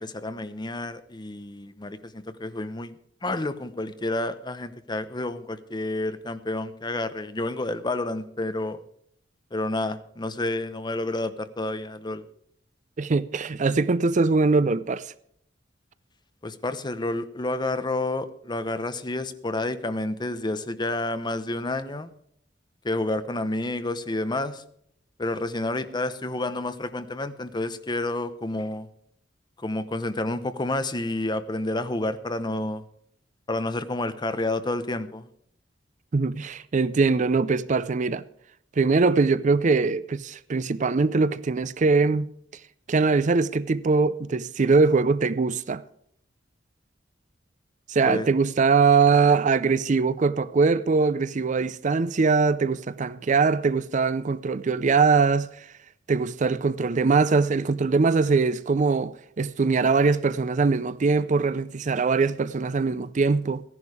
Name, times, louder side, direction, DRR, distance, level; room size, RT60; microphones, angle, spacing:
voice 1, 0.0-2.9 3.2-8.8 9.5-12.2 16.4-22.1 22.8-24.6 25.2-28.9 29.6-32.8 33.5-35.3 48.0-48.3, left 2 dB, 25° left, 0.8 m, -29 dB
voice 2, 13.0-15.1 36.1-38.2 38.8-42.3 42.9-45.8 47.9-55.7 56.1-63.6, right 4 dB, 40° right, 0.5 m, -22 dB
15.5 x 11.0 x 4.9 m
head